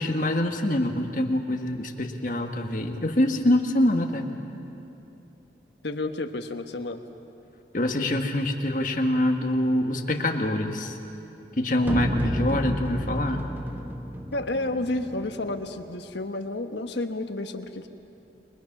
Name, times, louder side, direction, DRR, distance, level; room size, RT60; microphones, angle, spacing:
voice 1, 0.0-4.3 7.7-10.9 11.6-13.5, left 1 dB, 45° left, 3 dB, 1.7 m, -25 dB
voice 2, 5.8-7.0 14.3-17.9, left 2 dB, 80° left, 7 dB, 1.3 m, -31 dB
sound 1, 11.8-15.9, right 1 dB, 10° right, 1.1 m, -32 dB
29.0 x 22.0 x 6.1 m, 3.0 s
head